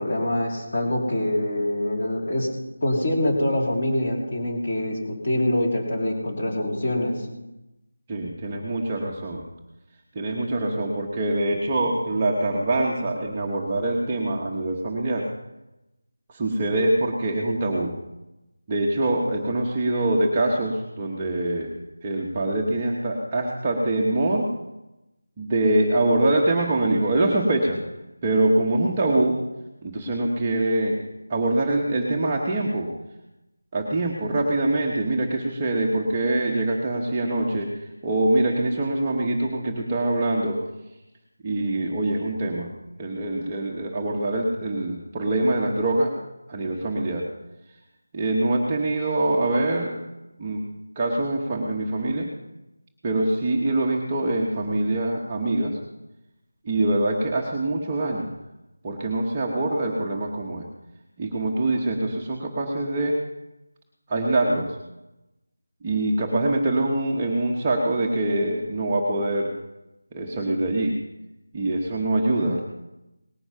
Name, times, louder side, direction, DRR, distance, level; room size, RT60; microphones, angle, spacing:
voice 1, 0.0-2.5 2.8-7.3, left 1 dB, 25° left, -1 dB, 3.0 m, -25 dB
voice 2, 8.1-9.4 10.1-15.3 16.3-17.9 18.7-21.7 22.0-24.5 25.4-27.8 28.2-29.4 29.8-31.0 31.3-32.9 33.7-37.7 38.0-40.6 41.4-42.7 43.0-46.1 46.5-47.2 48.1-49.9 50.4-50.6 51.0-52.3 53.0-55.8 56.6-58.3 58.8-60.7 61.2-63.2 64.1-64.8 65.8-69.5 70.1-71.0 71.5-72.6, right 2 dB, 15° right, -2 dB, 0.9 m, -24 dB
19.0 x 9.8 x 5.6 m, 0.97 s
figure-of-eight pair, 180°, 0 cm